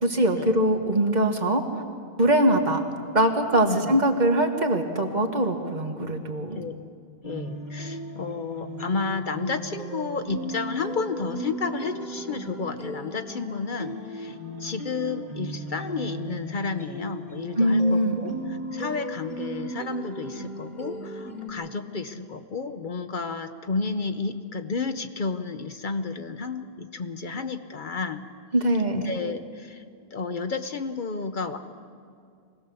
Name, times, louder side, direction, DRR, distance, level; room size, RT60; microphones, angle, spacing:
voice 1, 0.0-1.6 2.2-2.8 3.1-6.6 17.6-18.1 28.5-29.1, right 1 dB, 45° right, 3 dB, 1.7 m, -22 dB
voice 2, 3.6-4.0 6.5-6.7 7.2-28.3 28.9-29.8 30.1-31.6, left 4 dB, 55° left, 8 dB, 0.9 m, -32 dB
sound 1, 7.2-21.5, right 1 dB, 20° right, 3.3 m, -36 dB
24.0 x 17.5 x 7.0 m, 2.3 s
omnidirectional pair, 1.0 m